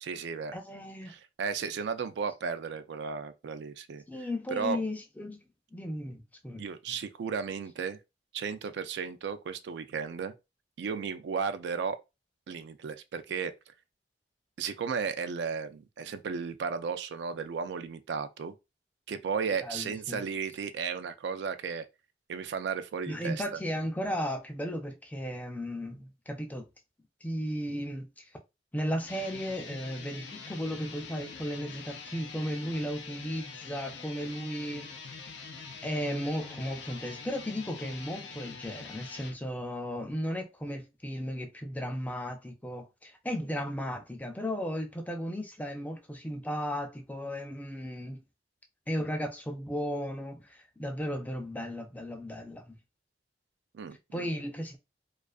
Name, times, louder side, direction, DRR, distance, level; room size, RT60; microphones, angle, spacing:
voice 1, 0.0-0.6 1.1-4.0 4.5-4.8 6.6-8.0 8.3-10.3 10.8-12.0 12.5-13.5 14.6-18.5 19.1-21.9 22.3-23.4 53.7-54.3, right 6 dB, 70° right, 0.3 m, -34 dB
voice 2, 0.5-1.1 4.1-5.4 5.7-7.0 19.6-20.2 23.1-26.7 27.2-28.2 28.7-35.1 35.8-48.2 48.9-52.8 54.1-54.8, equal, 10° left, 0.4 m, -35 dB
sound 1, 29.0-39.4, left 5 dB, 85° left, 0.5 m, -45 dB
2.4 x 2.4 x 2.2 m
head